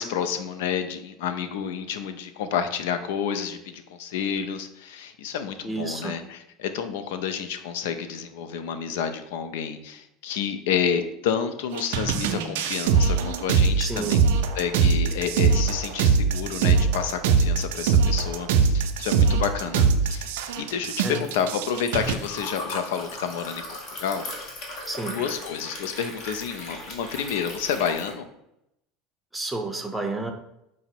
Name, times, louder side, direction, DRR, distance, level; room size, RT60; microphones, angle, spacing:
voice 1, 0.0-14.2 14.5-23.7 24.0-24.3 25.1-28.2, left 7 dB, 80° left, 9 dB, 0.4 m, -29 dB
voice 2, 5.6-6.2 13.8-14.3 21.0-21.3 24.9-25.2 29.3-30.3, right 3 dB, 5° right, 4 dB, 0.6 m, -30 dB
sound 1, 11.7-22.1, right 5 dB, 85° right, 0.4 m, -22 dB
Liquid, 19.9-28.1, left 1 dB, 55° left, 1.2 m, -38 dB
4.8 x 2.0 x 4.4 m, 0.83 s
supercardioid pair, 105°, 0 cm